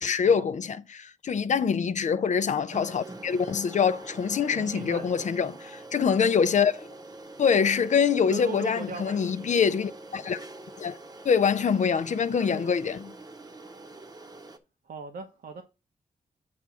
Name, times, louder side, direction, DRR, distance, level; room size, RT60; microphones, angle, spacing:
voice 1, 0.0-6.9 7.4-10.4 10.8-11.0 11.2-13.0, left 6 dB, 55° left, 0.6 m, -25 dB
sound 1, 2.7-14.6, right 2 dB, 25° right, 0.9 m, -45 dB
voice 2, 4.4-5.5 8.3-9.7 12.5-12.7 14.8-15.6, right 4 dB, 75° right, 1.0 m, -39 dB
8.7 x 3.5 x 6.2 m
wide cardioid pair, 170°, 15 cm